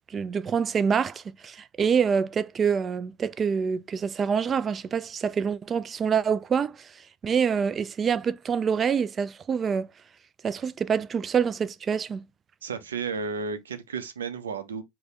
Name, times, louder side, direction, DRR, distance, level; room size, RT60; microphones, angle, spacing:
voice 1, 0.0-6.9 7.2-9.9 10.4-12.2, right 6 dB, 35° right, 0.3 m, -26 dB
voice 2, 12.6-14.8, right 5 dB, 85° right, 0.6 m, -33 dB
3.9 x 2.2 x 3.2 m
hypercardioid pair, 75°, 0 cm